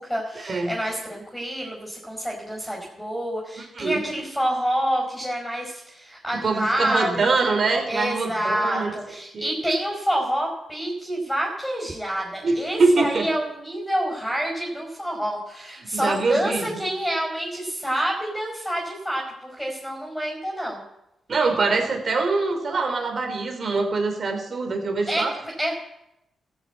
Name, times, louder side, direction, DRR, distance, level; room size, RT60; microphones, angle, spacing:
voice 1, 0.0-7.5 7.9-20.8 25.1-25.7, equal, 5° left, -1 dB, 5.2 m, -27 dB
voice 2, 3.6-4.0 6.4-8.9 9.3-9.5 12.4-13.3 15.8-16.8 21.3-25.4, right 3 dB, 50° right, 4 dB, 3.3 m, -24 dB
14.5 x 6.8 x 8.4 m, 0.87 s
cardioid pair, 60°, 0 cm